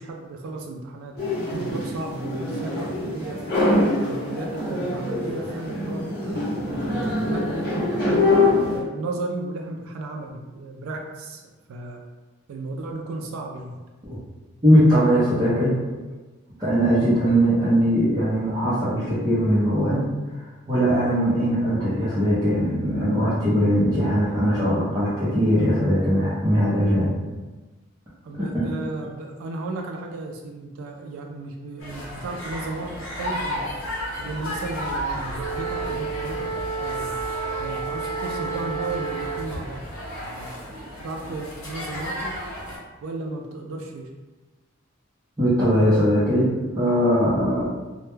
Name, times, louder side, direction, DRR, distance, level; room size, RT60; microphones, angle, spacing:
voice 1, 0.0-3.4 4.0-8.4 8.7-12.0 12.5-13.7 28.2-33.7 34.2-36.5 36.8-37.2 37.6-39.8 40.2-42.4 43.0-44.1, right 2 dB, 85° right, 2 dB, 0.3 m, -34 dB
sound 1, 1.2-8.8, left 2 dB, 50° left, 0.7 m, -24 dB
voice 2, 14.6-15.8 16.6-20.1 20.7-27.1 28.5-28.7 45.4-47.6, equal, 20° right, -13 dB, 0.6 m, -20 dB
sound 2, 31.8-42.8, equal, 80° left, 0.8 m, -33 dB
Wind instrument woodwind instrument, 35.3-39.7, right 5 dB, 65° right, 0.8 m, -31 dB
2.1 x 2.1 x 3.0 m, 1.2 s
head